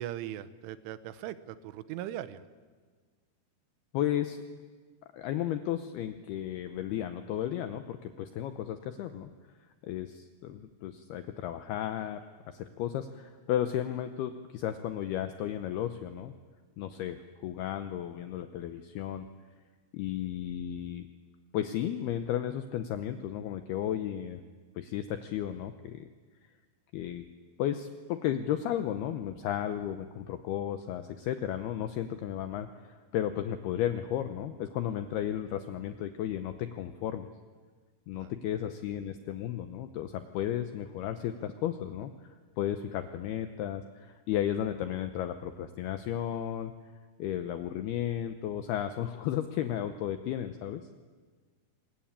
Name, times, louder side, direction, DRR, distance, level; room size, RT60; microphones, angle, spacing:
voice 1, 0.0-2.4 38.1-38.3, right 12 dB, 80° right, 13 dB, 3.3 m, -39 dB
voice 2, 3.9-4.4 5.1-9.3 9.8-16.3 16.8-19.3 19.9-21.0 21.5-24.4 24.8-26.1 26.9-27.2 27.6-37.3 38.1-46.7 47.2-50.8, left 11 dB, 90° left, 9 dB, 2.2 m, -34 dB
25.0 x 20.5 x 8.8 m, 1.5 s
omnidirectional pair, 5.7 m